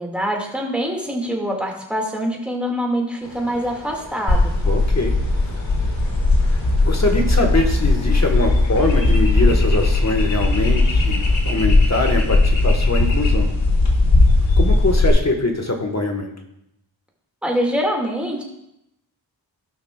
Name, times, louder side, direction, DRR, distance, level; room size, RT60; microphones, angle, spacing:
voice 1, 0.0-4.5 17.4-18.4, equal, ahead, -1 dB, 2.0 m, -24 dB
sound 1, 3.2-11.4, left 1 dB, 70° left, 2.6 m, -40 dB
sound 2, 4.3-15.1, left 2 dB, 85° left, 1.7 m, -17 dB
voice 2, 4.6-5.2 6.8-13.5 14.6-16.3, left 2 dB, 35° left, 3 dB, 1.4 m, -23 dB
15.5 x 5.9 x 2.3 m, 0.81 s
cardioid pair, 55°, 46 cm